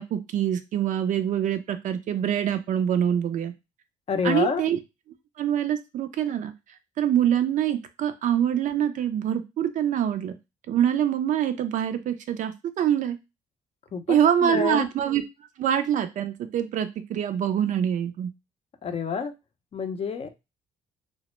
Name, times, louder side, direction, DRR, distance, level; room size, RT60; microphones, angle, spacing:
voice 1, 0.0-3.5 4.2-4.8 5.4-6.5 7.0-10.3 10.7-13.2 14.1-15.2 15.6-18.3, right 9 dB, 55° right, 10 dB, 0.4 m, -25 dB
voice 2, 4.1-4.6 13.9-14.9 18.8-19.3 19.7-20.5, left 5 dB, 40° left, 7 dB, 0.5 m, -28 dB
2.0 x 2.0 x 3.0 m, 0.24 s
supercardioid pair, 65°, 15 cm